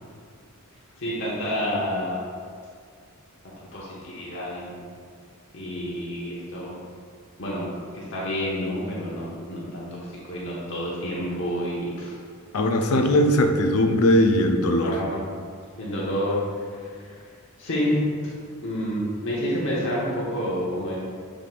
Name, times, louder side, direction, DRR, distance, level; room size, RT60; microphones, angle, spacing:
voice 1, 1.0-2.2 3.7-4.7 5.5-6.8 7.4-9.9 10.3-12.2 12.9-13.2 14.8-15.2 15.8-16.4 16.7-17.1 17.6-18.3 18.6-21.0, equal, 55° left, -6 dB, 1.1 m, -29 dB
voice 2, 12.5-15.0, left 1 dB, 75° left, 5 dB, 0.6 m, -20 dB
7.6 x 5.0 x 2.5 m, 2.1 s
head